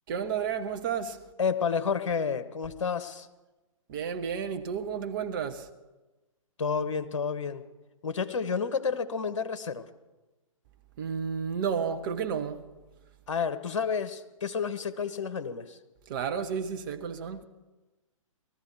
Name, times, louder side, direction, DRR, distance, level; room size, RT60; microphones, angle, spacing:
voice 1, 0.1-1.2 3.9-5.7 11.0-12.6 16.1-17.4, right 7 dB, 40° right, 1.0 m, -32 dB
voice 2, 1.4-3.3 6.6-7.6 8.0-9.8 13.3-15.8, left 6 dB, 60° left, 1.0 m, -30 dB
19.0 x 13.5 x 4.6 m
figure-of-eight pair, 120°, 18 cm